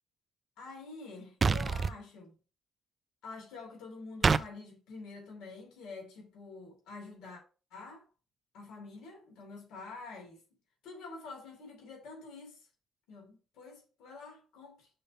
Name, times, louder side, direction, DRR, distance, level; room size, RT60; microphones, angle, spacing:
voice 1, 0.6-2.4 3.2-7.4 7.7-8.0 8.5-10.4 10.8-12.7 13.1-14.9, left 3 dB, 90° left, 2.8 m, -47 dB
sound 1, 1.4-1.9 4.2-4.5, right 5 dB, 35° right, 0.4 m, -26 dB
5.6 x 3.5 x 5.5 m
cardioid pair, 90°, 0 cm